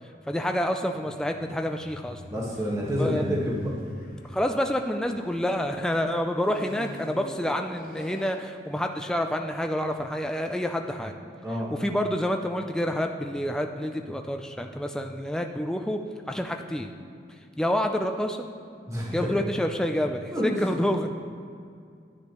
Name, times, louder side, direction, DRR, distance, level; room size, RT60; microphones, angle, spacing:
voice 1, 0.3-2.2 3.0-3.5 4.2-11.1 11.7-16.0 16.3-16.9 17.6-18.5 19.1-21.1, equal, 5° left, 4 dB, 0.3 m, -28 dB
sound 1, 0.9-5.6 6.4-8.9 9.6-9.7, left 1 dB, 50° left, 0.9 m, -44 dB
voice 2, 2.3-3.7 11.4-11.7 18.9-19.3 20.3-20.8, equal, 15° right, -4 dB, 1.4 m, -28 dB
10.0 x 9.6 x 3.0 m, 2.3 s
head